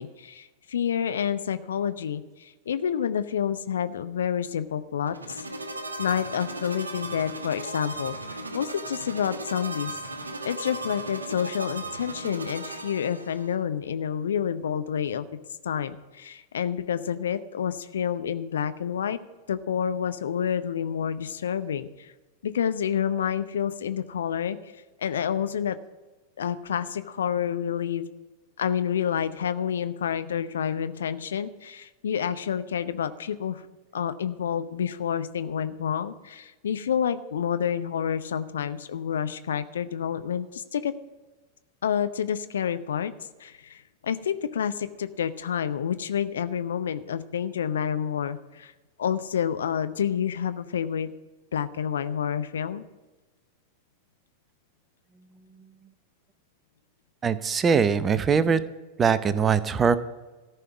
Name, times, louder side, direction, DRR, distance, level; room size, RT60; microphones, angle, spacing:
voice 1, 0.0-5.4 6.0-10.0 10.4-15.2 15.6-19.2 19.5-22.1 22.4-24.6 25.0-25.8 26.4-28.1 28.6-33.6 33.9-40.9 41.8-43.1 43.4-48.7 49.0-51.1 51.5-52.8, left 8 dB, 65° left, 12 dB, 0.7 m, -29 dB
sound 1, 5.0-13.5, right 2 dB, 80° right, 1.1 m, -37 dB
voice 2, 57.2-58.6 59.0-60.0, right 6 dB, 20° right, 15 dB, 0.7 m, -22 dB
14.0 x 5.7 x 9.5 m, 1.2 s
figure-of-eight pair, 90°, 0 cm